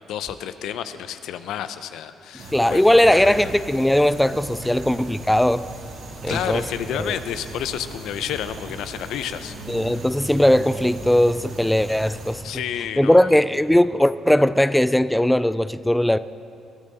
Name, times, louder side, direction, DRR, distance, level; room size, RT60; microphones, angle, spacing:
voice 1, 0.1-3.4 6.3-10.0 12.4-13.4, left 10 dB, 80° left, 11 dB, 0.7 m, -31 dB
sound 1, 2.4-12.4, right 2 dB, 65° right, 3.5 m, -38 dB
voice 2, 2.5-5.6 6.2-6.6 7.0-7.1 9.7-12.4 13.0-16.2, left 1 dB, 5° left, 14 dB, 0.3 m, -19 dB
Bass guitar, 9.4-15.7, right 3 dB, 60° left, 4.2 m, -42 dB
21.0 x 13.0 x 4.1 m, 2.9 s
cardioid pair, 105°, 0 cm